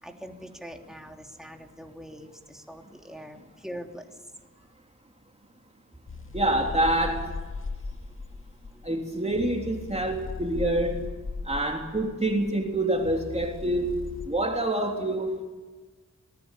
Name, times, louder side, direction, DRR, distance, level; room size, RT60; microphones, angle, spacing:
voice 1, 0.0-4.1 8.3-8.4 8.7-8.9, equal, ahead, 2 dB, 3.1 m, -43 dB
sound 1, 6.1-14.3, left 3 dB, 45° left, 2.1 m, -38 dB
voice 2, 6.3-7.3 8.8-11.1 11.5-14.0 14.2-15.4, right 1 dB, 20° right, 2 dB, 3.4 m, -26 dB
26.0 x 19.5 x 8.4 m, 1.3 s
wide cardioid pair, 105°, 29 cm